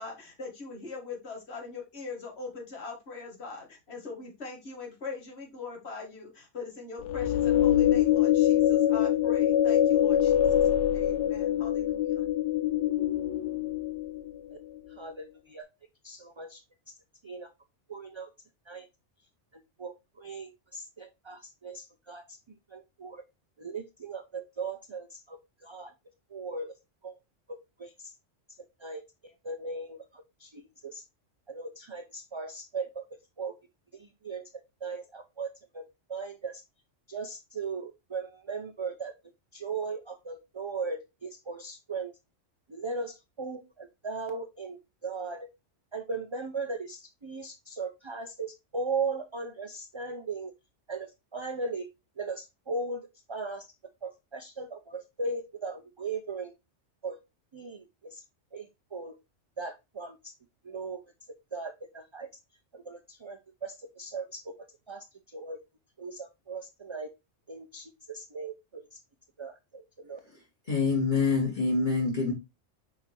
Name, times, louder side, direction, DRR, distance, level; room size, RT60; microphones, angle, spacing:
voice 1, 0.0-10.6 10.9-12.2, left 4 dB, 60° left, 2.1 m, -41 dB
sound 1, 7.0-14.4, left 11 dB, 75° left, 0.9 m, -24 dB
voice 2, 14.9-15.7 16.0-16.6 16.9-17.0 17.2-17.5 17.9-18.3 18.7-18.9 19.5-22.4 22.7-23.2 23.6-25.9 26.3-26.7 27.0-27.2 27.8-28.1 28.8-31.0 31.5-33.0 33.4-33.5 33.9-35.8 36.1-36.6 37.1-39.1 39.5-42.1 42.7-45.5 45.9-50.5 50.9-51.9 52.2-53.7 54.0-56.5 57.0-57.2 57.5-58.2 58.5-59.2 59.6-60.3 60.6-61.0 61.5-62.3 62.7-64.5 64.9-65.6 66.0-67.1 67.5-69.0 69.4-70.2, right 4 dB, 35° right, 0.5 m, -38 dB
voice 3, 70.7-72.3, left 4 dB, 40° left, 2.3 m, -26 dB
5.9 x 3.8 x 4.4 m
omnidirectional pair, 1.3 m